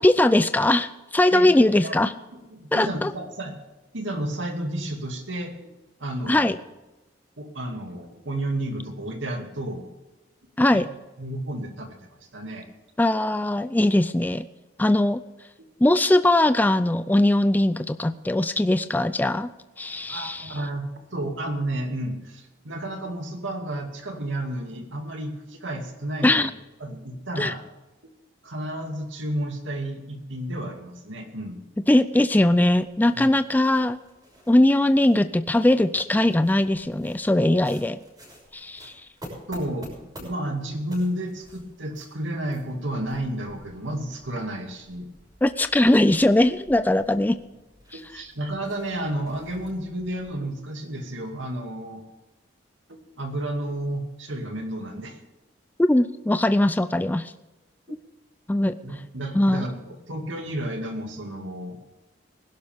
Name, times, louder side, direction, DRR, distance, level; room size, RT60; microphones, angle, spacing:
voice 1, 0.0-2.1 2.7-3.1 6.3-6.6 10.6-10.9 13.0-14.5 14.8-15.2 15.8-19.5 19.8-20.6 26.2-26.5 27.4-27.5 31.9-34.0 34.5-38.0 38.5-38.9 45.4-47.4 47.9-48.2 55.8-57.3 58.5-58.7 59.3-59.6, left 1 dB, 10° left, 12 dB, 0.3 m, -20 dB
voice 2, 1.3-2.0 2.3-3.5 3.9-5.7 6.0-6.5 7.4-9.8 10.7-10.8 11.2-12.7 20.1-26.5 26.8-27.6 28.4-31.6 33.1-33.3 39.5-39.9 40.2-45.1 47.9-52.0 52.9-55.2 58.8-61.8, right 1 dB, 85° right, 3 dB, 2.4 m, -32 dB
sound 1, 32.7-50.3, equal, 20° right, 6.2 m, -50 dB
20.5 x 11.5 x 3.6 m, 1.1 s
head